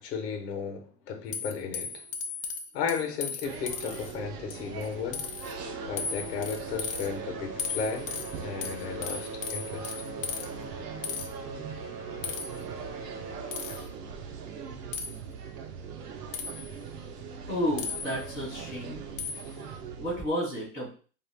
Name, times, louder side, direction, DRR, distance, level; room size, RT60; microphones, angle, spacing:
voice 1, 0.0-2.0 2.7-5.3 5.9-8.1 8.4-9.9, left 6 dB, 80° left, 1.0 m, -34 dB
sound 1, 1.3-4.1 4.5-4.9 5.1-5.5 6.0-7.1 7.6-10.5 11.0-11.3 12.2-12.6 13.5-13.9 14.9-15.2 16.3-16.8 17.8-18.4 19.2-19.6, left 6 dB, 55° left, 0.5 m, -36 dB
sound 2, 3.4-20.2, right 6 dB, 70° right, 0.8 m, -41 dB
sound 3, 4.3-4.9 5.2-15.5 16.4-16.5 17.2-17.3 17.9-18.0, right 3 dB, 40° right, 0.8 m, -42 dB
voice 2, 17.5-19.0 20.0-20.9, equal, 5° right, 0.3 m, -31 dB
2.5 x 2.4 x 3.2 m
supercardioid pair, 170°, 48 cm